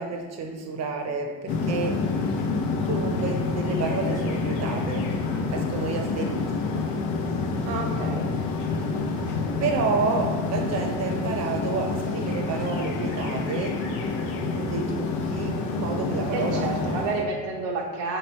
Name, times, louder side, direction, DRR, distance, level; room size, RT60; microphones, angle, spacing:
voice 1, 0.0-2.0 2.7-5.1 5.5-6.8 9.6-13.8 14.5-16.7, right 4 dB, 50° right, 3 dB, 0.7 m, -30 dB
sound 1, 1.5-17.2, left 4 dB, 85° left, 0.6 m, -28 dB
voice 2, 7.6-8.3 16.3-18.2, right 3 dB, 90° right, 0 dB, 0.8 m, -30 dB
3.3 x 2.9 x 4.3 m, 1.5 s
cardioid pair, 105°, 35 cm